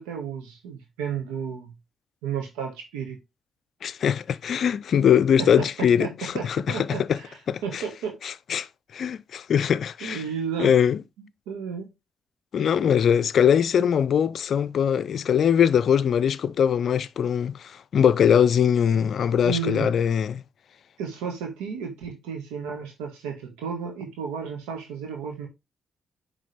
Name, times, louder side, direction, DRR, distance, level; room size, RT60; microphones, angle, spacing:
voice 1, 0.0-1.7 2.2-3.2 5.4-8.2 10.0-10.7 11.2-11.9 19.4-19.9 21.0-25.5, right 6 dB, 85° right, 1.7 m, -33 dB
voice 2, 3.8-7.2 7.5-7.8 8.2-8.7 8.9-10.2 10.6-11.0 12.5-20.4, left 8 dB, 65° left, 0.4 m, -22 dB
9.7 x 3.8 x 3.3 m
hypercardioid pair, 40°, 0 cm